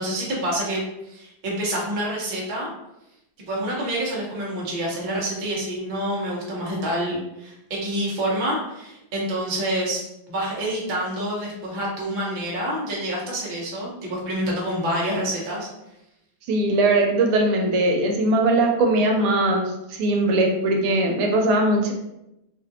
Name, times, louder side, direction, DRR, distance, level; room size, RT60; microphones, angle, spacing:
voice 1, 0.0-2.7 3.5-15.7, right 1 dB, 60° right, -4 dB, 0.5 m, -27 dB
voice 2, 16.5-21.9, right 2 dB, 80° right, 2 dB, 1.5 m, -20 dB
3.6 x 2.4 x 2.7 m, 0.88 s
omnidirectional pair, 2.4 m